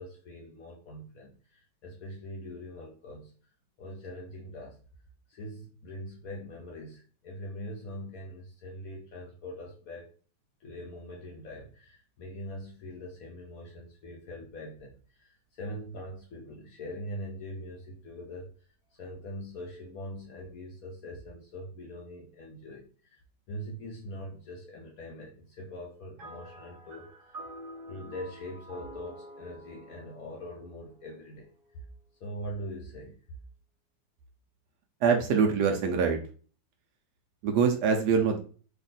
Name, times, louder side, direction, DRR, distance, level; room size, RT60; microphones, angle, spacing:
voice 1, 0.0-3.3 3.8-4.8 5.3-10.1 10.6-18.5 18.9-23.2 23.5-27.4 27.9-31.8 32.2-33.2, equal, 65° left, 0.9 m, -42 dB
sound 1, 26.2-31.7, right 1 dB, 50° right, 0.6 m, -48 dB
voice 2, 35.0-36.2 37.4-38.4, right 6 dB, 70° right, 1.1 m, -24 dB
3.5 x 2.5 x 3.9 m
omnidirectional pair, 2.0 m